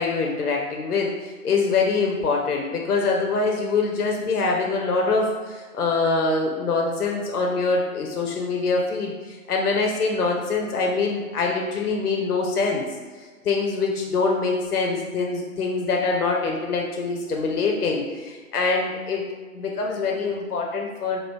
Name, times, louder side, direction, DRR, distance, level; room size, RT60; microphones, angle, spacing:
voice 1, 0.0-12.8 13.4-19.3 19.5-21.2, left 4 dB, 85° left, 0 dB, 0.7 m, -24 dB
4.4 x 2.4 x 3.3 m, 1.4 s
hypercardioid pair, 155°, 44 cm